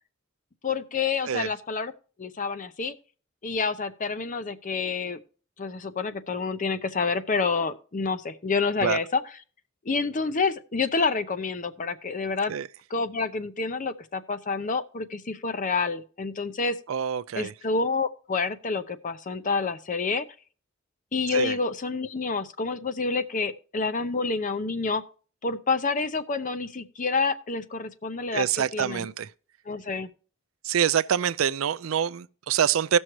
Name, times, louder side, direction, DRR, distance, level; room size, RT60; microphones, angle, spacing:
voice 1, 0.6-1.9 2.2-2.9 3.4-5.2 5.6-9.2 9.9-12.5 12.9-16.8 17.3-20.3 21.1-25.0 25.4-28.5 28.7-29.1 29.7-30.1, left 4 dB, 40° left, 0.7 m, -28 dB
voice 2, 16.9-17.5 21.3-21.6 28.3-29.3 30.6-33.0, right 8 dB, 80° right, 0.4 m, -25 dB
17.5 x 6.3 x 3.0 m
head